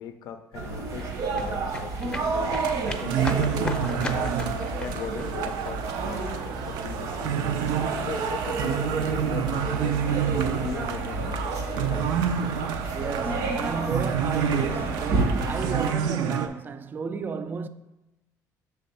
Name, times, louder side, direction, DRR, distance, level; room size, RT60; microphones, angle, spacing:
voice 1, 0.0-2.5 3.0-4.4 4.8-7.6 8.0-11.8, left 9 dB, 75° left, 0.4 m, -40 dB
sound 1, 0.5-15.7, left 3 dB, 15° left, 0.6 m, -41 dB
sound 2, 0.5-15.9, right 3 dB, 60° right, 0.9 m, -31 dB
sound 3, 2.3-16.5, right 8 dB, 85° right, 0.5 m, -29 dB
voice 2, 12.9-17.7, right 5 dB, 30° right, 0.3 m, -33 dB
6.5 x 3.4 x 5.3 m
cardioid pair, 130°, 7 cm